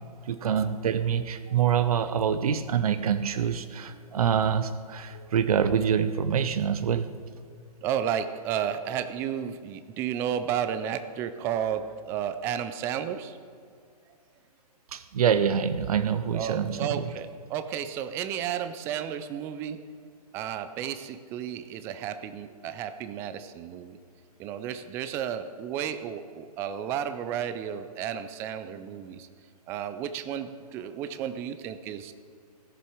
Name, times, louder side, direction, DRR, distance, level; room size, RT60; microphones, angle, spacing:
voice 1, 0.3-7.1 14.9-17.1, right 8 dB, 65° right, 11 dB, 0.7 m, -26 dB
voice 2, 7.8-13.4 16.3-19.8 20.3-24.0 24.4-29.3 29.7-32.1, right 9 dB, 10° right, 11 dB, 0.3 m, -32 dB
16.5 x 7.1 x 4.7 m, 2.3 s
hypercardioid pair, 135°, 20 cm